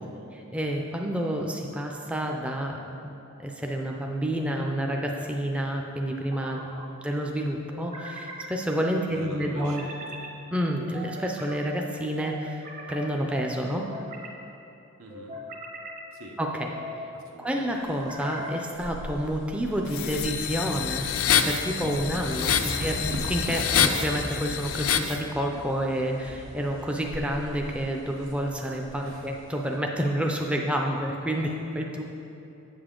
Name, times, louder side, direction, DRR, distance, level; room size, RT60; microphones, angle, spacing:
voice 1, 0.0-0.3 6.6-6.7 7.1-7.4 9.1-10.1 15.0-15.4 16.1-16.4 17.1-17.7 22.5-23.0 29.0-29.3, right 2 dB, 85° right, 1 dB, 0.9 m, -44 dB
voice 2, 0.5-3.1 3.4-6.7 7.0-9.8 10.5-13.9 16.4-16.7 17.4-21.1 21.4-22.5 22.8-32.0, equal, 5° right, 0 dB, 0.4 m, -29 dB
sound 1, 6.1-6.9 7.7-8.5 9.6-10.3 10.9-11.6 12.2-13.1 13.7-14.4 15.1-16.0 16.6-17.1 17.9-18.7, right 1 dB, 35° right, 0.9 m, -40 dB
sound 2, 17.7-29.8, right 1 dB, 60° right, 0.8 m, -39 dB
sound 3, 19.9-25.2, left 8 dB, 70° left, 0.4 m, -27 dB
7.9 x 6.9 x 3.7 m, 2.8 s
head